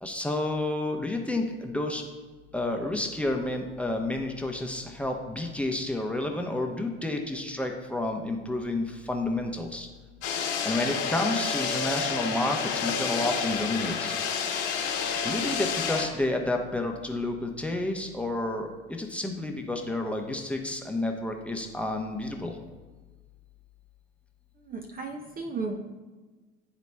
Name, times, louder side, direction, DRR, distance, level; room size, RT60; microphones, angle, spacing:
voice 1, 0.0-2.0 2.5-9.9 10.6-14.1 15.2-22.5, left 2 dB, 5° left, 2 dB, 0.8 m, -30 dB
sound 1, 10.2-16.1, left 6 dB, 65° left, 1.3 m, -29 dB
voice 2, 24.7-25.8, right 4 dB, 30° right, 4 dB, 0.6 m, -34 dB
11.0 x 4.0 x 2.2 m, 1.3 s
figure-of-eight pair, 70°, 30 cm